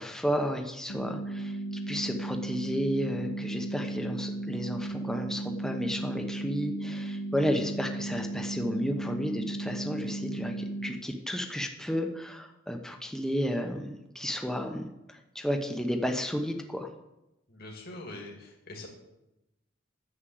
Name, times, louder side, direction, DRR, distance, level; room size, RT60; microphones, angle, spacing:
voice 1, 0.0-1.6 1.9-16.9, equal, 5° left, 4 dB, 1.0 m, -32 dB
sound 1, 0.9-10.9, right 2 dB, 70° left, 1.3 m, -35 dB
voice 2, 17.5-18.9, left 2 dB, 50° left, 0 dB, 2.2 m, -43 dB
9.9 x 7.4 x 7.8 m, 0.93 s
head